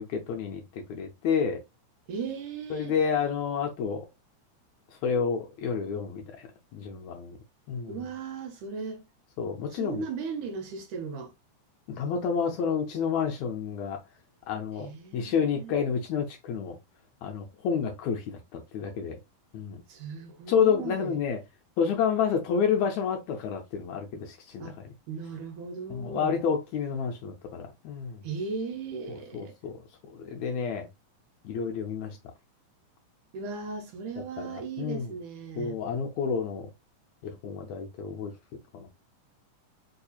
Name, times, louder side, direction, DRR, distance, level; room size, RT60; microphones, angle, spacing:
voice 1, 0.0-1.6 2.7-4.1 5.0-6.5 6.7-7.4 7.7-8.0 9.4-10.0 11.9-14.0 14.5-16.8 17.2-19.2 19.5-19.8 20.5-21.4 21.8-24.9 25.9-28.2 29.3-29.8 30.1-30.9 31.4-32.2 34.4-35.1 35.6-36.7 37.2-38.3 38.7-38.9, left 6 dB, 80° left, 1.7 m, -29 dB
voice 2, 2.1-3.0 7.9-9.0 9.7-11.3 14.8-15.7 19.9-21.2 24.6-24.8 25.1-26.4 28.2-29.5 33.3-35.8, right 5 dB, 80° right, 2.0 m, -37 dB
4.8 x 2.7 x 2.3 m
omnidirectional pair, 3.7 m